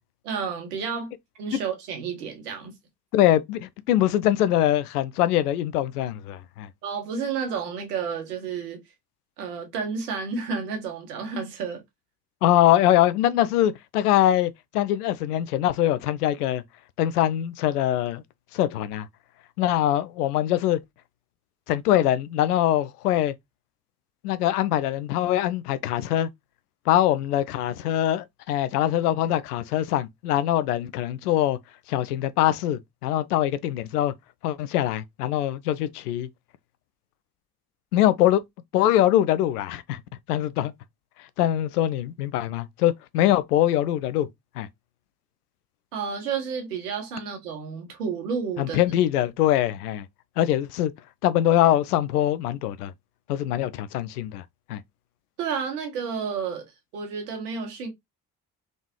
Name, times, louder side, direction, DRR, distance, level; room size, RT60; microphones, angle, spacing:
voice 1, 0.2-1.1 1.4-2.7 6.8-8.8 9.4-11.8 45.9-48.8 55.4-56.6 56.9-57.9, right 6 dB, 75° right, 1.5 m, -31 dB
voice 2, 3.1-6.7 12.4-16.6 17.0-18.2 18.5-19.1 19.6-20.8 21.7-23.3 24.2-26.3 26.9-31.6 31.9-34.1 34.4-36.3 37.9-38.4 38.7-40.0 40.3-40.7 41.4-44.3 44.6-44.7 48.6-50.1 50.4-50.9 51.2-52.9 53.3-54.4 54.7-54.8, left 12 dB, 75° left, 0.5 m, -23 dB
3.8 x 3.5 x 3.0 m
figure-of-eight pair, 40°, 46 cm